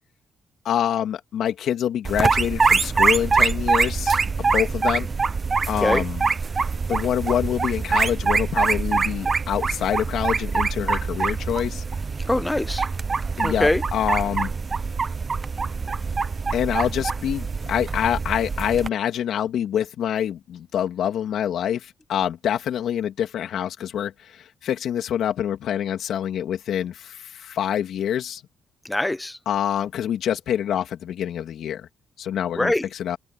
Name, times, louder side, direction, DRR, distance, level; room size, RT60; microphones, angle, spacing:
voice 1, 0.6-4.2 4.5-5.1 5.7-6.2 6.9-11.8 13.4-14.5 16.5-28.4 29.5-31.9 32.2-33.2, left 10 dB, 70° left, 3.0 m, -26 dB
sound 1, 2.0-18.9, right 4 dB, 35° right, 0.8 m, -24 dB
voice 2, 12.3-12.8 13.4-13.8 28.8-29.4 32.5-32.9, left 1 dB, 10° left, 1.2 m, -22 dB
open air
cardioid pair, 90°, 0 cm